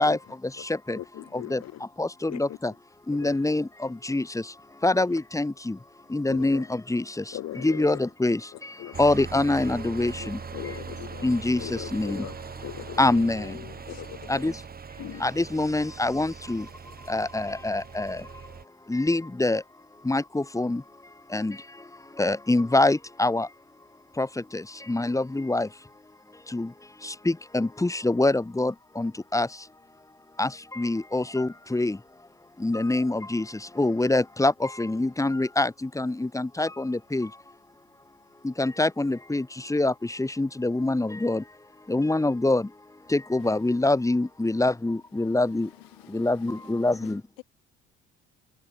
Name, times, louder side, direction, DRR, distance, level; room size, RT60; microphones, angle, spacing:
voice 1, 0.0-1.0 1.3-2.7 3.1-10.8 11.2-12.3 13.0-13.6 14.3-14.6 15.2-16.7 17.0-18.4 18.8-19.6 19.9-23.5 24.1-25.9 26.3-29.7 30.4-32.3 32.6-37.4 38.4-45.7 46.1-47.2, left 2 dB, 10° left, 1.6 m, -26 dB
voice 2, 1.0-1.9 2.3-2.6 3.1-3.4 4.1-4.2 4.9-5.2 6.3-6.7 7.3-8.0 8.8-9.1 10.2-11.3 11.6-13.2 13.9-14.5 15.0-15.3, left 13 dB, 60° left, 7.2 m, -40 dB
sound 1, 8.9-18.7, right 5 dB, 30° right, 2.2 m, -41 dB
voice 3, 13.1-13.8 45.8-46.7 47.0-47.1, left 24 dB, 85° left, 3.4 m, -47 dB
hypercardioid pair, 60°, 29 cm